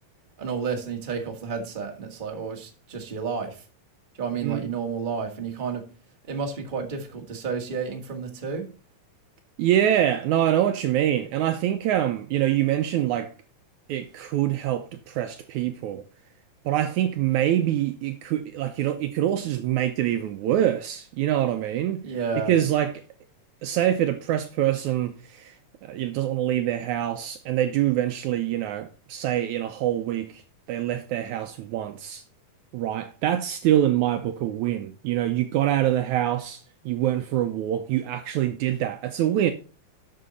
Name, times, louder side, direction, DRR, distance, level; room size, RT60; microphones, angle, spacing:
voice 1, 0.4-3.6 4.2-5.9 6.3-8.7 22.0-22.5, right 5 dB, 20° right, 1.4 m, -31 dB
voice 2, 9.6-13.3 13.9-16.0 16.7-22.0 22.5-22.9 23.6-25.6 25.8-30.4 30.7-32.2 32.7-39.5, right 12 dB, 75° right, 1.9 m, -25 dB
11.5 x 6.1 x 4.1 m
omnidirectional pair, 3.8 m